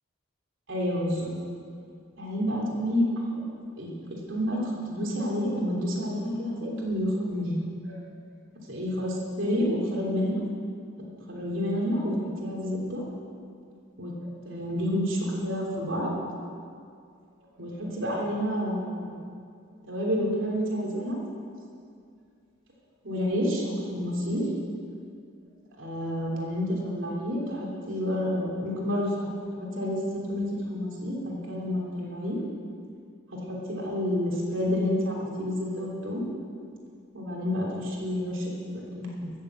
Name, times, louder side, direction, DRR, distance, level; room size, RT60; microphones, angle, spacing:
voice 1, 0.7-1.3 2.2-3.0 3.3-3.4 3.8-3.9 4.3-7.6 7.8-8.0 8.7-10.4 11.3-13.0 14.0-14.1 14.4-16.1 17.6-19.3 19.9-21.2 23.0-24.5 25.8-32.4 33.3-36.2 37.1-39.3, equal, 60° right, -3 dB, 3.2 m, -29 dB
14.0 x 7.4 x 7.9 m, 2.3 s
head